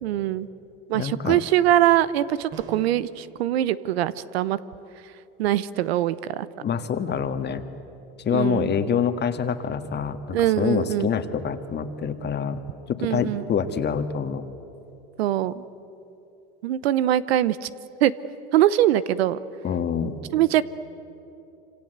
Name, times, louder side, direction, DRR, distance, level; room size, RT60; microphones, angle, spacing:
voice 1, 0.0-0.5 0.9-4.6 5.4-6.5 8.3-8.7 10.3-11.1 13.0-13.4 15.2-15.6 16.6-17.7 18.0-18.1 18.5-19.4 20.3-20.6, right 12 dB, 90° right, 16 dB, 0.9 m, -22 dB
voice 2, 0.9-1.4 6.6-7.6 8.2-12.6 12.9-14.4 19.6-20.2, left 7 dB, 35° left, 8 dB, 1.8 m, -26 dB
sound 1, 2.5-3.1, right 6 dB, 50° right, 5.0 m, -42 dB
26.5 x 25.5 x 8.1 m, 2.8 s
supercardioid pair, 100°, 30 cm